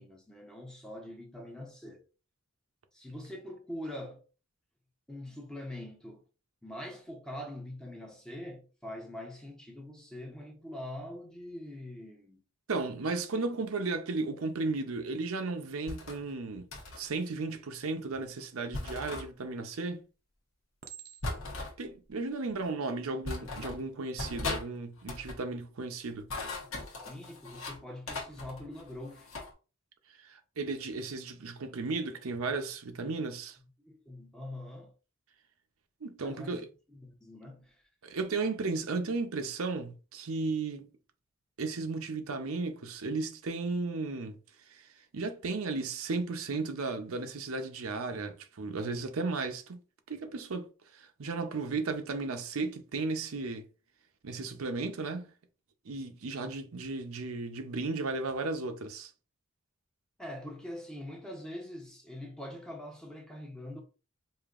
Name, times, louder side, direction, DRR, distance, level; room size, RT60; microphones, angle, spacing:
voice 1, 0.0-2.1 2.9-4.2 5.1-6.2 6.6-12.4 26.6-29.3 33.8-34.9 36.2-36.6 36.9-37.8 60.2-63.8, left 1 dB, 5° left, 0.7 m, -43 dB
voice 2, 12.7-16.7 17.0-20.0 21.8-26.3 30.2-33.6 36.0-36.7 38.0-40.9 41.6-44.4 44.7-49.8 50.1-53.7 54.2-55.3 55.9-59.1, right 3 dB, 85° right, 0.7 m, -35 dB
sound 1, 15.9-16.2 16.7-17.1 18.7-19.3 21.2-21.7 22.6-22.7 23.2-23.8 24.2-24.7 25.0-25.4 26.1-27.8 28.1-29.5, left 2 dB, 75° left, 1.1 m, -38 dB
Chink clink, 19.3-19.8 20.8-21.6 22.3-22.6, right 10 dB, 45° right, 0.5 m, -50 dB
4.9 x 2.7 x 2.5 m
head